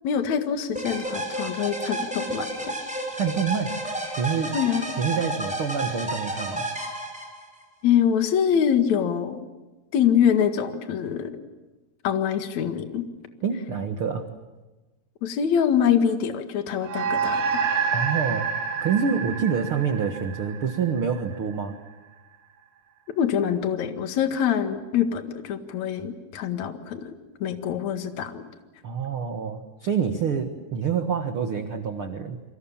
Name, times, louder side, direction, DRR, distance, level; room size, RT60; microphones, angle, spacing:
voice 1, 0.0-2.7 4.5-4.9 7.8-9.5 9.9-11.3 12.0-13.1 15.2-17.6 23.2-27.1 27.4-28.4, left 8 dB, 50° left, 7 dB, 2.6 m, -24 dB
sound 1, 0.7-7.6, right 1 dB, ahead, 5.7 m, -31 dB
voice 2, 3.2-3.7 4.2-4.6 5.0-6.7 13.4-14.3 17.9-18.5 18.8-21.8 28.8-32.4, right 6 dB, 75° right, 6 dB, 1.2 m, -27 dB
sound 2, 16.8-21.5, right 6 dB, 90° right, 4.2 m, -28 dB
29.5 x 25.0 x 7.4 m, 1.1 s
omnidirectional pair, 4.9 m